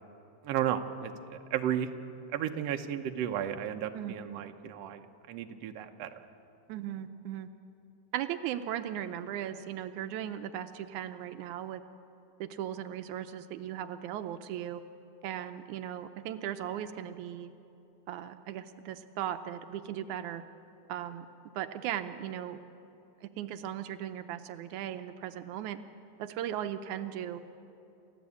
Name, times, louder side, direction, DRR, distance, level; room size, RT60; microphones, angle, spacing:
voice 1, 0.4-1.9 2.3-6.1, right 10 dB, 70° right, 6 dB, 1.8 m, -34 dB
voice 2, 6.7-7.5 8.1-11.8 12.4-14.8 15.2-17.5 18.1-20.4 20.9-21.3 21.6-22.6 23.2-25.8 26.2-27.4, right 11 dB, 85° right, 9 dB, 2.1 m, -37 dB
28.5 x 14.0 x 8.4 m, 2.8 s
omnidirectional pair, 3.4 m